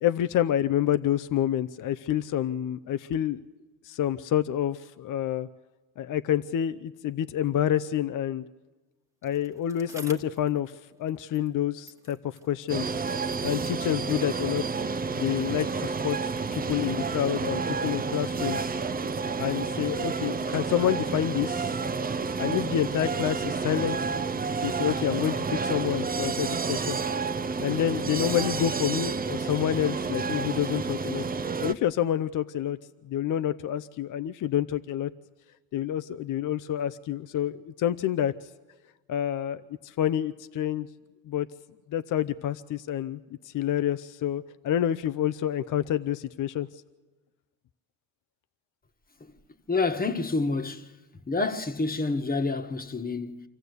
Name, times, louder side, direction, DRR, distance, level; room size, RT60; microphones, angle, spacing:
voice 1, 0.0-3.4 3.8-5.5 6.0-8.4 9.2-10.7 11.0-12.9 13.4-14.6 15.1-18.7 19.4-21.7 22.4-24.0 24.6-27.0 27.6-32.8 33.0-35.1 35.7-38.5 39.1-40.9 41.3-41.5 41.9-43.2 43.4-46.7, left 11 dB, 55° left, 0.7 m, -28 dB
Bicycle, 9.2-11.6 11.8-14.2 15.0-15.1, right 2 dB, 10° right, 1.6 m, -51 dB
sound 1, 12.7-31.7, right 4 dB, 25° right, 0.7 m, -30 dB
voice 2, 49.7-50.9 51.3-53.5, left 3 dB, 25° left, 1.5 m, -28 dB
26.0 x 14.5 x 8.2 m
cardioid pair, 85°, 37 cm